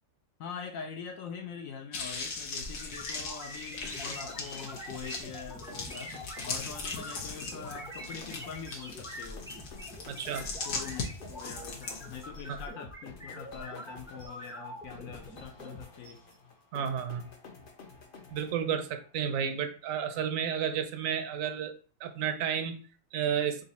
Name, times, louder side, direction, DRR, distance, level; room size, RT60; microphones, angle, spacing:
voice 1, 0.4-6.2 6.4-9.5 10.6-16.2, left 6 dB, 70° left, 4 dB, 1.0 m, -43 dB
sound 1, 1.9-12.3, left 4 dB, 85° left, 1.5 m, -39 dB
sound 2, 2.8-15.8, equal, 5° right, 0.5 m, -45 dB
sound 3, 3.8-19.1, left 4 dB, 45° left, 0.8 m, -51 dB
voice 2, 10.1-10.5 12.5-12.6 16.7-17.3 18.3-23.6, right 8 dB, 70° right, 6 dB, 1.0 m, -32 dB
3.9 x 2.5 x 4.1 m, 0.40 s
omnidirectional pair, 1.5 m